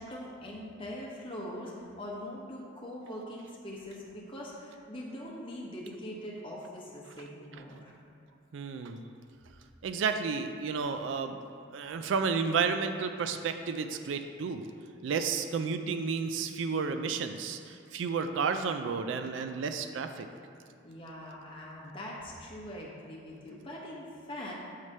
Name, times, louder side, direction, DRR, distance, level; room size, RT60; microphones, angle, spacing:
voice 1, 0.0-8.0 8.9-9.0 20.8-24.5, left 1 dB, 30° left, -4 dB, 1.1 m, -42 dB
voice 2, 8.5-9.1 9.8-11.4 11.7-14.7 15.0-20.3, right 5 dB, 75° right, 8 dB, 0.3 m, -32 dB
7.4 x 3.2 x 5.4 m, 2.5 s
head